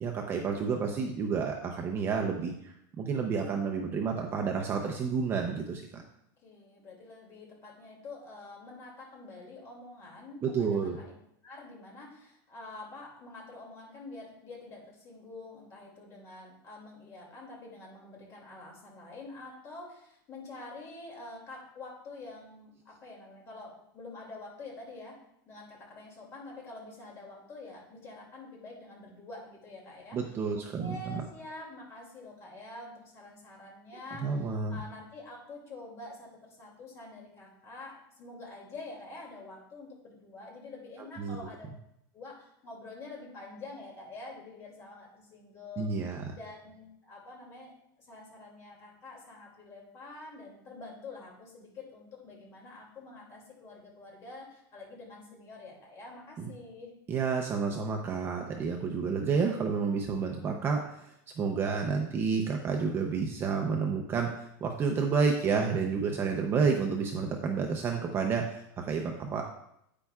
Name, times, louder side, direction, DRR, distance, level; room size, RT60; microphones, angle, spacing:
voice 1, 0.0-6.0 10.4-11.0 30.1-31.2 34.2-34.8 41.2-41.4 45.8-46.2 56.4-56.5 57.1-69.4, right 5 dB, 20° right, 2 dB, 0.6 m, -30 dB
voice 2, 6.4-11.2 11.4-25.2 25.5-41.7 42.1-56.9, left 2 dB, 25° left, -1 dB, 2.5 m, -47 dB
9.8 x 8.9 x 2.4 m, 0.76 s
supercardioid pair, 170°, 11 cm